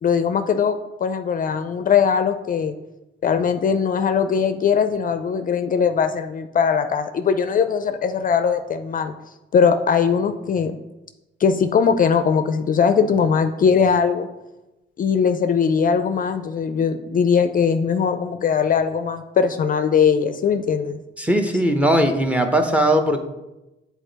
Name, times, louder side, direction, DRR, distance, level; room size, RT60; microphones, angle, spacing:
voice 1, 0.0-2.7 3.2-9.1 9.5-10.8 11.4-14.3 15.0-21.0, left 6 dB, 45° left, 9 dB, 0.4 m, -20 dB
voice 2, 21.2-23.2, right 1 dB, 5° right, 5 dB, 0.9 m, -19 dB
8.2 x 4.1 x 4.0 m, 1.0 s
cardioid pair, 90°, 20 cm